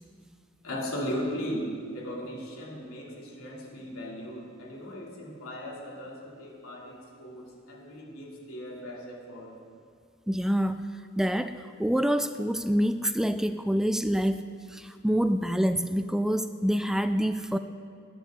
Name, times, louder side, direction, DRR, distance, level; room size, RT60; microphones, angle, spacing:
voice 1, 0.6-9.6, equal, 85° left, -3 dB, 2.8 m, -37 dB
voice 2, 10.3-10.8 11.2-14.4 14.7-17.6, equal, ahead, 10 dB, 0.3 m, -26 dB
19.0 x 10.0 x 3.8 m, 2.3 s
head